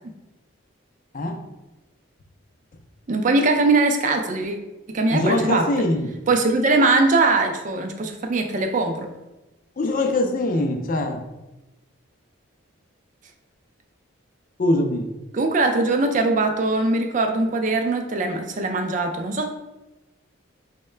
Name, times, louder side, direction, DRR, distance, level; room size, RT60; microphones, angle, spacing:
voice 1, 3.1-4.6 4.9-5.7 6.3-9.1 15.3-19.5, right 3 dB, 35° right, 4 dB, 0.4 m, -21 dB
voice 2, 5.1-6.1 9.8-11.2 14.6-15.1, left 1 dB, 40° left, 4 dB, 0.4 m, -22 dB
4.5 x 2.1 x 3.2 m, 1.0 s
head